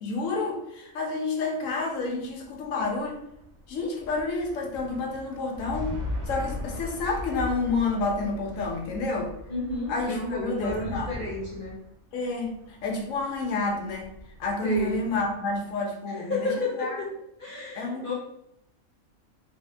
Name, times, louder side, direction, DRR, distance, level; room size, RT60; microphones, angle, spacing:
voice 1, 0.0-3.2 3.7-6.0 6.3-9.3 9.9-11.3 12.1-14.1 14.4-17.0 17.7-18.1, left 3 dB, 65° left, 1 dB, 1.1 m, -29 dB
sound 1, 2.1-15.7, left 1 dB, 60° right, 1.1 m, -39 dB
voice 2, 9.5-11.8 14.6-15.0 16.1-17.1 17.4-18.1, left 2 dB, 40° left, -6 dB, 1.2 m, -31 dB
3.4 x 2.7 x 3.3 m, 0.77 s
omnidirectional pair, 1.5 m